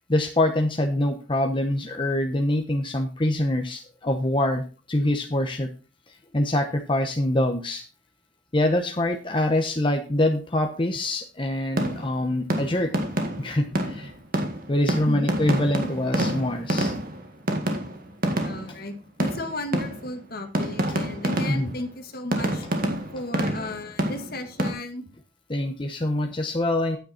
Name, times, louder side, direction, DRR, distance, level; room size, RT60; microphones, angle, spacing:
voice 1, 0.1-4.6 4.9-5.7 6.3-7.8 8.5-12.9 13.4-14.1 14.7-16.9 21.5-21.7 25.5-27.0, left 1 dB, 30° left, 4 dB, 0.9 m, -24 dB
sound 1, 11.8-12.2 12.5-18.8 19.2-20.3 20.5-21.8 22.3-24.7, right 1 dB, 50° right, 1.9 m, -28 dB
voice 2, 15.1-15.5 18.4-22.7 23.1-25.1, left 2 dB, 55° left, 6 dB, 1.8 m, -34 dB
9.2 x 8.9 x 4.3 m, 0.34 s
head